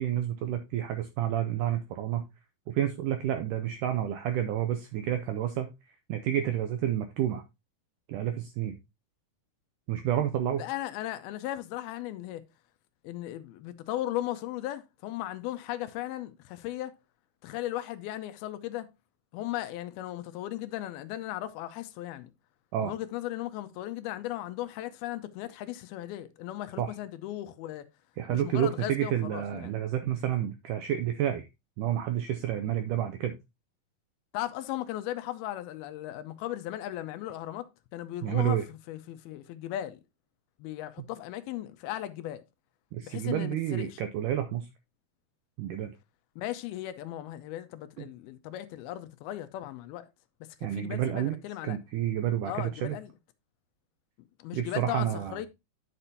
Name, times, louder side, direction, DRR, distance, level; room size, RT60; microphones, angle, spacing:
voice 1, 0.0-2.2 2.7-5.7 6.1-7.4 8.1-8.8 9.9-10.7 22.7-22.9 26.8-26.9 28.2-31.5 31.8-33.4 38.2-38.6 42.9-44.7 45.6-45.9 50.6-51.4 51.6-53.0 54.5-55.4, right 11 dB, 85° right, 1.8 m, -29 dB
voice 2, 10.6-12.4 13.0-16.9 17.4-18.9 19.3-22.3 22.8-27.9 28.3-29.8 34.3-40.0 40.6-42.4 43.0-44.0 46.4-50.1 50.6-51.8 52.5-53.1 54.4-55.5, left 14 dB, 85° left, 2.6 m, -37 dB
9.9 x 6.8 x 2.7 m
omnidirectional pair, 4.5 m